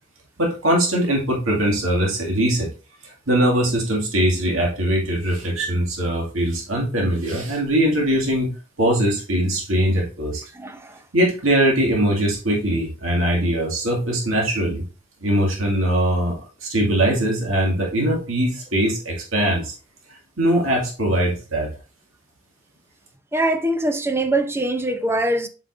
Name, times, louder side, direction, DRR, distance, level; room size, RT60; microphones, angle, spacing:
voice 1, 0.4-2.7 3.0-8.5 8.8-10.4 11.1-14.9 15.2-19.7 20.4-21.7, right 1 dB, 85° right, 2.1 m, -21 dB
voice 2, 10.5-11.0 23.3-25.5, right 1 dB, 10° right, 0.6 m, -23 dB
7.3 x 5.2 x 2.5 m
head